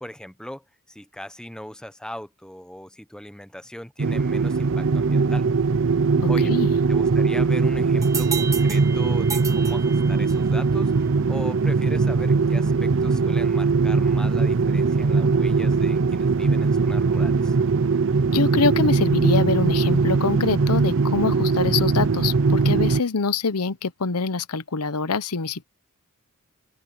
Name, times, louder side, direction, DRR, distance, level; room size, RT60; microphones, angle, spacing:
voice 1, 0.0-5.5 6.3-6.5 6.9-17.6, equal, 5° left, 0.9 m, -39 dB
sound 1, 4.0-23.0, right 4 dB, 60° right, 0.6 m, -20 dB
voice 2, 6.2-6.7 18.3-25.6, left 4 dB, 85° left, 0.9 m, -25 dB
sound 2, 8.0-10.6, right 6 dB, 15° right, 2.0 m, -33 dB
open air
head